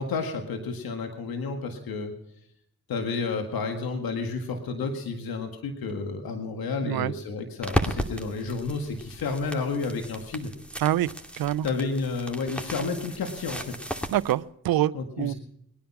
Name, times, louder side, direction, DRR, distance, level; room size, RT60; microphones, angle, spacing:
voice 1, 0.0-2.1 2.9-10.5 11.6-13.8 14.9-15.3, left 4 dB, 85° left, 5 dB, 1.9 m, -31 dB
sound 1, 7.6-14.3, equal, 5° left, 2.5 m, -35 dB
voice 2, 11.4-11.7 14.1-15.3, right 13 dB, 85° right, 20 dB, 0.6 m, -25 dB
21.0 x 10.5 x 5.9 m, 0.78 s
supercardioid pair, 45°, 35 cm